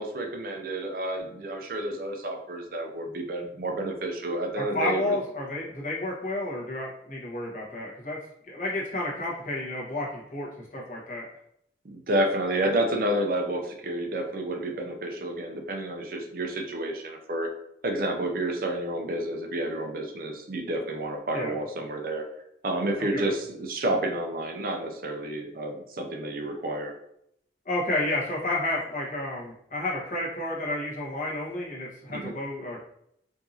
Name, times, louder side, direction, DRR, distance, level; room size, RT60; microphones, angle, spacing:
voice 1, 0.0-5.2 11.8-17.5 17.8-22.2 22.6-26.9 32.1-32.3, right 1 dB, 50° right, 3 dB, 0.5 m, -30 dB
voice 2, 4.6-8.2 8.4-11.3 21.3-21.5 23.1-23.3 27.6-32.8, left 2 dB, 45° left, -4 dB, 1.1 m, -31 dB
4.6 x 2.6 x 2.7 m, 0.75 s
head